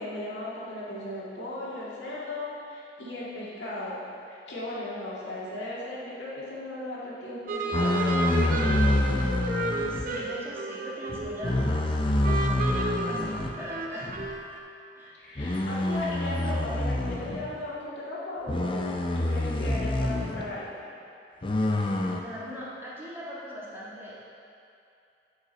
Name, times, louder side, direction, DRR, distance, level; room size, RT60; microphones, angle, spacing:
voice 1, 0.0-4.0 4.3-9.0 15.1-20.7, left 1 dB, 90° left, -8 dB, 2.1 m, -36 dB
sound 1, 7.5-11.8 12.2-14.6, right 2 dB, 50° right, 0.6 m, -32 dB
sound 2, 7.7-10.1 11.1-13.6 14.0-14.3 15.4-17.5 18.5-20.5 21.4-22.2, left 1 dB, 30° left, 0.5 m, -27 dB
voice 2, 9.9-14.1 14.9-15.1 22.2-24.1, equal, 15° right, -8 dB, 1.8 m, -40 dB
9.9 x 5.7 x 4.1 m, 2.6 s
head